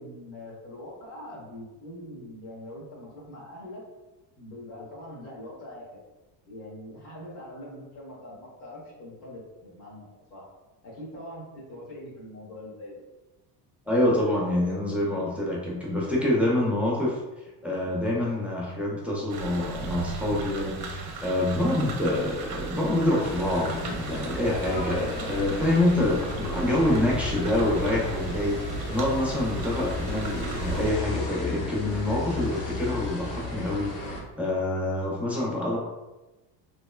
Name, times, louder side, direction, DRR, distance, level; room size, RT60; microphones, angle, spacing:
voice 1, 0.0-3.8 4.4-6.0 6.5-10.5 10.8-13.0, left 1 dB, 80° left, -4 dB, 1.2 m, -43 dB
voice 2, 13.9-28.6 28.9-33.9 34.4-35.8, left 1 dB, 5° right, -5 dB, 0.6 m, -26 dB
sound 1, 19.3-30.9, right 5 dB, 50° right, 0.6 m, -38 dB
sound 2, 23.2-34.2, left 2 dB, 40° left, 0.8 m, -34 dB
3.1 x 2.0 x 2.3 m, 1.1 s
supercardioid pair, 75°, 49 cm